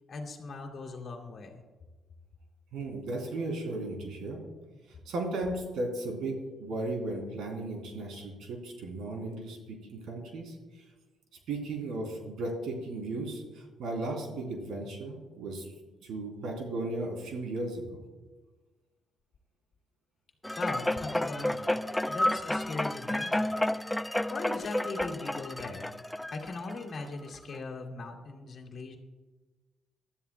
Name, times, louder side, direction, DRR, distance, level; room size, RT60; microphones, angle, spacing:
voice 1, 0.1-1.6 20.6-23.6 23.9-25.9 26.3-29.0, left 3 dB, 50° left, 2 dB, 2.2 m, -40 dB
voice 2, 2.7-4.4 4.9-10.6 11.5-15.7 16.0-18.0, right 2 dB, 80° right, 1 dB, 3.4 m, -35 dB
sound 1, 20.4-27.0 27.5-27.6, left 1 dB, 5° left, 0.3 m, -31 dB
20.0 x 12.5 x 2.3 m, 1.3 s
cardioid pair, 90°, 0 cm